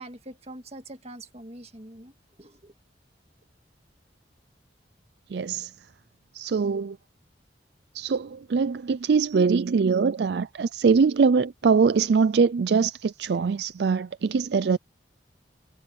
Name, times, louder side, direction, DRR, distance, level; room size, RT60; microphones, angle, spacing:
voice 1, 0.0-2.1 2.4-2.7, right 1 dB, 35° right, 2.0 m, -43 dB
voice 2, 5.3-5.7 6.3-7.0 7.9-14.8, right 5 dB, 65° right, 0.4 m, -23 dB
head